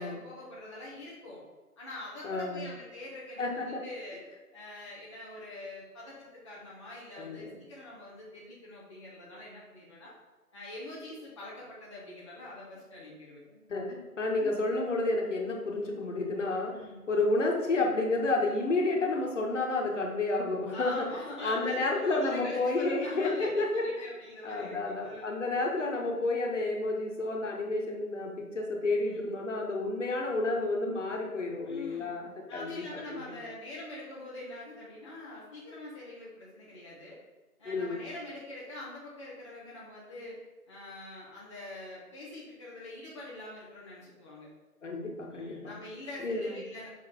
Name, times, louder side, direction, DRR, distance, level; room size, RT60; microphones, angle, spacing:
voice 1, 0.0-1.4 1.8-4.2 4.5-10.1 10.5-13.6 14.4-14.6 16.7-17.0 20.7-25.4 29.0-29.4 31.7-32.1 32.5-37.2 37.6-40.4 40.7-44.5 45.3-46.9, left 2 dB, 20° left, -8 dB, 0.8 m, -44 dB
voice 2, 2.2-2.6 3.4-3.8 7.2-7.5 13.7-16.8 17.1-21.1 21.4-24.1 24.4-32.2 32.5-32.7 33.1-33.2 37.6-38.0 44.8-45.8 46.2-46.6, left 2 dB, 50° left, -1 dB, 1.6 m, -30 dB
5.8 x 4.5 x 4.3 m, 1.2 s
figure-of-eight pair, 160°, 45 cm